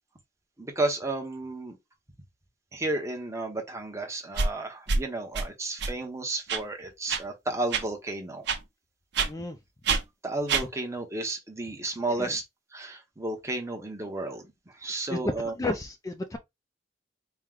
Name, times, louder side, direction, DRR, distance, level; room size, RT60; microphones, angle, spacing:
voice 1, 0.6-1.8 2.7-8.4 10.2-12.4 12.7-14.4 14.8-15.5, right 2 dB, 15° right, 0.8 m, -32 dB
sound 1, 4.4-4.5 4.9-5.0 5.3-5.4 5.8-5.9 6.5-6.6 7.1-7.2 7.7-7.8 8.5-8.6 9.1-9.3 9.9-10.0 10.5-10.6, right 4 dB, 65° right, 0.8 m, -25 dB
voice 2, 9.2-9.6 12.2-12.3 15.1-16.4, left 2 dB, 20° left, 0.4 m, -32 dB
4.5 x 2.2 x 3.6 m
head